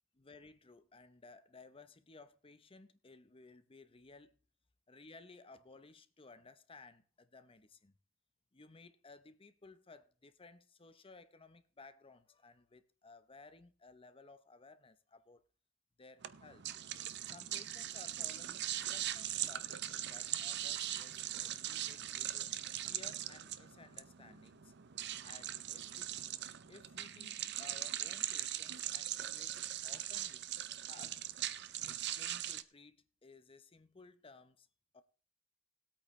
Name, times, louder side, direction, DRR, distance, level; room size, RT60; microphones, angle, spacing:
voice 1, 0.1-4.4 4.9-8.0 8.5-15.4 16.0-16.7 17.2-22.5 22.8-24.7 25.2-26.2 26.7-30.5 30.9-31.2 31.8-34.7 34.9-35.0, left 3 dB, 25° left, 0.8 m, -58 dB
sound 1, 16.2-32.6, right 12 dB, 55° right, 0.6 m, -41 dB
19.5 x 8.7 x 3.2 m
head